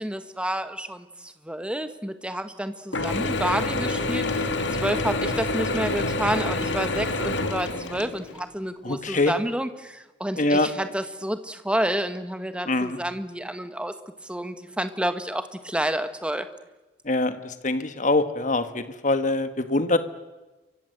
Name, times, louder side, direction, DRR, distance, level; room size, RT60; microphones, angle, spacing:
voice 1, 0.0-4.5 4.8-13.9 14.2-16.5, right 1 dB, 5° right, 10 dB, 1.5 m, -29 dB
Mechanisms / Drill, 2.9-8.4, left 2 dB, 70° left, 2.1 m, -27 dB
voice 2, 8.8-9.3 10.4-10.7 12.7-13.0 17.0-20.0, left 2 dB, 40° left, 10 dB, 1.5 m, -24 dB
28.5 x 24.0 x 7.9 m, 1.1 s
head